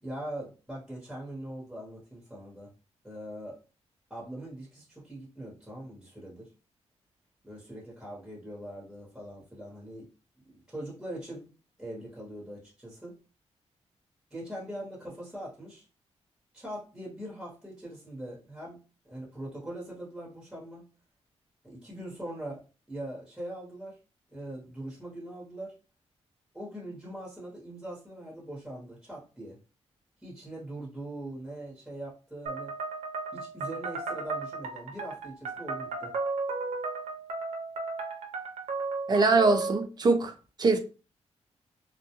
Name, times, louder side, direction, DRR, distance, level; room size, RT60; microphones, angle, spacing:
voice 1, 0.0-2.7 3.0-3.6 4.1-6.5 7.4-10.1 10.4-11.5 11.8-13.2 14.3-15.9 16.5-18.8 19.1-20.9 21.6-22.6 22.9-24.0 24.3-25.8 26.5-29.6 30.2-32.7 33.3-36.1, right 1 dB, 5° right, 1.0 m, -41 dB
sound 1, 32.5-39.8, right 3 dB, 85° right, 0.5 m, -35 dB
voice 2, 39.1-40.3 40.6-40.8, right 3 dB, 40° right, 0.4 m, -22 dB
2.2 x 2.1 x 2.8 m
cardioid pair, 115°, 11 cm